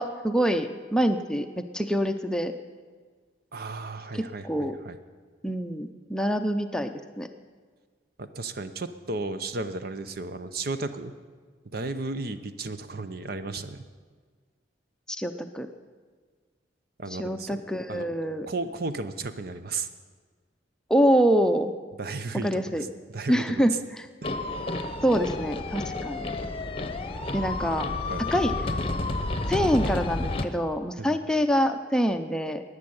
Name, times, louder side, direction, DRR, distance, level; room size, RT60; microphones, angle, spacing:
voice 1, 0.0-2.5 4.1-4.8 5.4-7.3 15.1-15.7 17.1-18.5 20.9-21.7 22.4-22.8 23.3-24.1 25.0-26.4 27.3-27.9 28.3-28.5 29.5-32.6, equal, 5° left, 7 dB, 0.6 m, -25 dB
voice 2, 3.5-5.0 8.2-11.1 11.7-13.8 17.0-17.6 17.9-19.9 22.0-23.7 28.1-28.2 31.0-31.2, right 3 dB, 55° right, 10 dB, 0.8 m, -34 dB
sound 1, 24.2-30.5, left 2 dB, 30° left, 0.8 m, -30 dB
14.0 x 9.7 x 8.6 m, 1.6 s
head